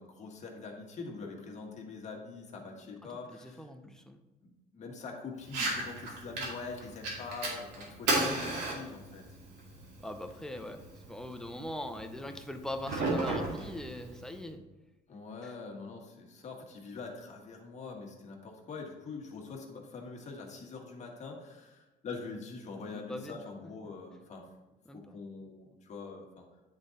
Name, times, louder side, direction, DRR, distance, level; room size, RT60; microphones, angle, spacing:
voice 1, 0.0-3.9 4.4-9.2 15.1-24.6 24.9-26.4, left 4 dB, 45° left, 0 dB, 1.6 m, -44 dB
voice 2, 3.3-4.2 10.0-10.8 11.1-14.6 15.4-15.5 22.9-23.4 24.9-25.2, left 1 dB, 5° left, 6 dB, 0.6 m, -41 dB
Fire, 5.4-14.4, right 2 dB, 90° right, 2.2 m, -36 dB
9.7 x 4.0 x 3.8 m, 1.1 s
cardioid pair, 110°, 17 cm